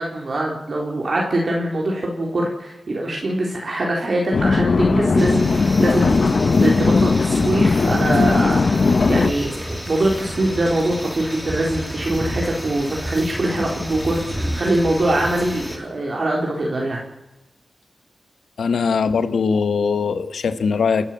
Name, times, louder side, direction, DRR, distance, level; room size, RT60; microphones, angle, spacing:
voice 1, 0.0-9.6 9.9-17.0, right 1 dB, 55° right, -1 dB, 4.1 m, -23 dB
sound 1, 4.3-9.3, left 4 dB, 60° left, 0.9 m, -18 dB
sound 2, 5.2-15.8, equal, 5° right, 3.1 m, -31 dB
voice 2, 18.6-21.1, left 5 dB, 90° left, 11 dB, 1.4 m, -20 dB
29.5 x 12.5 x 7.5 m, 1.0 s
wide cardioid pair, 75°, 0 cm